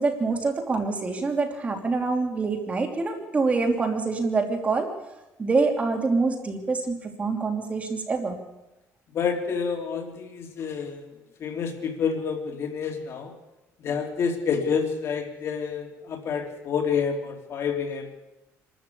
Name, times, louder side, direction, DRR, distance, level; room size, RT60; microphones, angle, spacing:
voice 1, 0.0-4.9 5.4-8.4, right 3 dB, 20° right, 3 dB, 2.9 m, -25 dB
voice 2, 9.1-11.0 11.4-13.3 13.8-18.1, left 6 dB, 45° left, 3 dB, 3.3 m, -28 dB
26.0 x 13.0 x 8.5 m, 1.0 s
cardioid pair, 145°, 6 cm